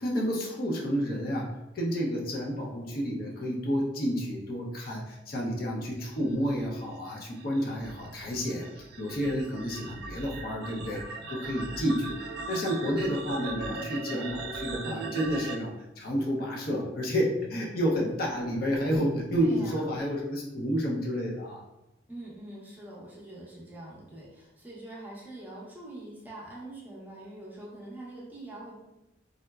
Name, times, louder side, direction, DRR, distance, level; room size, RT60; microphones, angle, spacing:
voice 1, 0.0-1.5 1.7-12.1 12.5-21.6, equal, 55° left, -2 dB, 0.6 m, -30 dB
sound 1, 6.3-15.6, right 3 dB, 60° right, 0.3 m, -39 dB
voice 2, 19.3-19.9 22.1-28.8, right 1 dB, 10° right, -6 dB, 0.6 m, -44 dB
3.6 x 2.0 x 2.3 m, 0.95 s
head